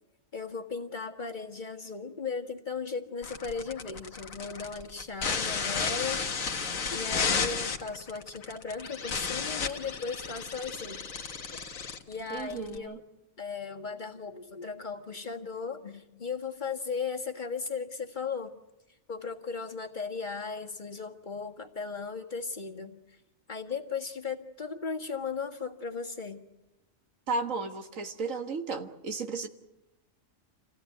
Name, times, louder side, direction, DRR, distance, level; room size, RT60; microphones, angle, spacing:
voice 1, 0.3-6.2 6.9-11.0 11.5-11.6 12.1-13.0 13.4-18.5 19.1-23.0 23.5-26.4, left 5 dB, 35° left, 3 dB, 1.8 m, -36 dB
sound 1, 3.2-12.8, left 5 dB, 85° left, 1.8 m, -33 dB
voice 2, 12.3-13.0 27.3-29.5, right 4 dB, 80° right, 7 dB, 1.9 m, -34 dB
27.5 x 16.5 x 9.3 m, 0.99 s
omnidirectional pair, 1.3 m